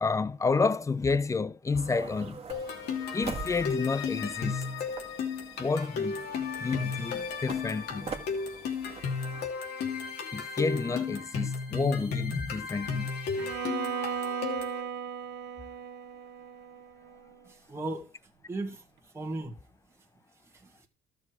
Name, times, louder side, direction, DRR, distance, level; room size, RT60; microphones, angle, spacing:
voice 1, 0.0-2.4 3.1-4.6 5.6-6.3 6.6-8.1 10.3-13.1, left 4 dB, 20° left, 0.6 m, -30 dB
sound 1, 1.7-9.5, right 5 dB, 35° right, 1.7 m, -44 dB
sound 2, 2.5-14.8, left 5 dB, 75° left, 2.8 m, -34 dB
Bowed string instrument, 13.4-17.4, right 7 dB, 80° right, 1.0 m, -36 dB
voice 2, 17.5-18.1 18.5-18.8 19.1-19.6 20.5-20.9, right 2 dB, 15° right, 1.8 m, -36 dB
13.0 x 6.5 x 4.8 m
cardioid pair, 110°, 17 cm